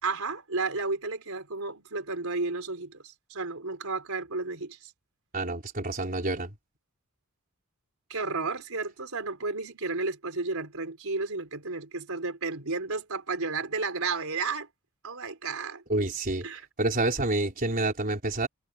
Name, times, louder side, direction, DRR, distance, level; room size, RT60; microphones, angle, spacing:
voice 1, 0.0-3.0 3.3-4.9 8.1-14.7 15.0-15.8 16.4-16.7, right 3 dB, 75° right, 4.5 m, -32 dB
voice 2, 5.3-6.5 15.9-16.5 16.8-18.5, right 2 dB, 40° right, 3.8 m, -28 dB
head